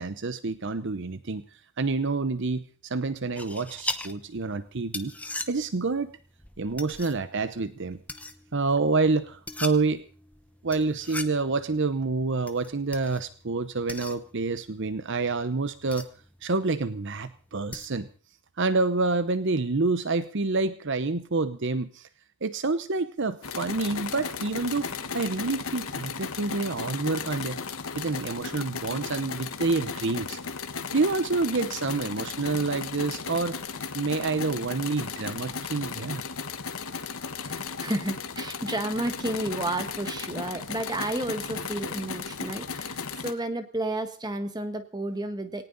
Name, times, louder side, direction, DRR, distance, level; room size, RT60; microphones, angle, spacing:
voice 1, 0.0-1.4 1.8-5.1 5.5-6.1 6.6-8.0 8.5-10.0 10.6-16.1 16.4-18.1 18.6-22.1 22.4-27.6 27.9-30.4 30.9-33.6 33.9-36.2, right 3 dB, 55° right, 13 dB, 0.8 m, -28 dB
sound 1, 3.4-18.2, left 2 dB, 5° left, 0.9 m, -41 dB
sound 2, 23.4-43.3, left 5 dB, 75° left, 1.4 m, -35 dB
voice 2, 37.4-45.7, right 1 dB, 20° right, 8 dB, 1.5 m, -32 dB
18.5 x 18.5 x 4.0 m, 0.38 s
head